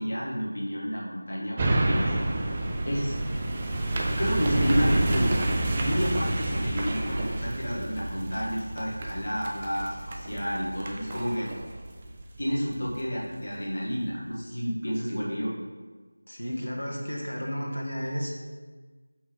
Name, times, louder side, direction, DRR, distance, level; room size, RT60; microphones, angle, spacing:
voice 1, 0.0-2.2 2.8-3.2 4.2-5.5 5.7-11.5 12.4-15.5, equal, 45° left, -4 dB, 1.4 m, -30 dB
sound 1, 1.6-13.0 13.5-13.6, right 2 dB, 15° right, 0.4 m, -29 dB
voice 2, 16.3-18.3, equal, 75° left, -2 dB, 1.3 m, -32 dB
5.7 x 3.3 x 4.9 m, 1.4 s
figure-of-eight pair, 170°, 0 cm